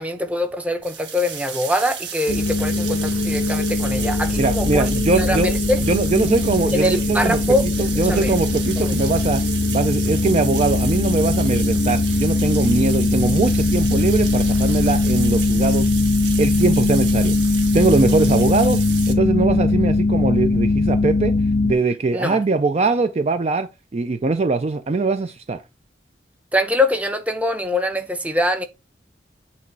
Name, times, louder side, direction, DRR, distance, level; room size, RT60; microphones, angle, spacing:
voice 1, 0.0-5.8 6.7-8.3 8.8-8.9 22.1-22.4 26.5-28.6, left 1 dB, 10° right, 0.8 m, -23 dB
sound 1, 0.8-19.1, right 7 dB, 85° right, 1.5 m, -32 dB
sound 2, 2.3-21.7, left 3 dB, 55° left, 0.5 m, -20 dB
voice 2, 4.4-5.5 5.9-7.4 7.8-9.4 9.7-15.9 16.4-17.3 17.7-18.8 19.1-21.3 21.6-25.6, right 3 dB, 35° right, 0.4 m, -21 dB
8.5 x 3.0 x 4.6 m
head